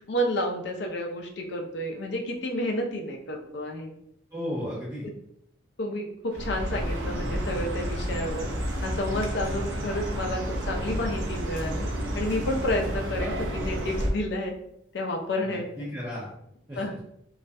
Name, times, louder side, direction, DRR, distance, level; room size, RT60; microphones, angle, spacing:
voice 1, 0.1-3.9 5.8-8.5 8.8-11.9 12.1-14.5 14.9-15.6 16.8-17.0, left 1 dB, 65° left, 2 dB, 0.4 m, -30 dB
voice 2, 4.3-5.2 15.4-16.3 16.7-17.0, left 1 dB, 20° right, -9 dB, 0.5 m, -34 dB
Chirp tweet, 6.3-14.1, equal, 80° right, 0.5 m, -30 dB
2.3 x 2.1 x 2.5 m, 0.74 s
head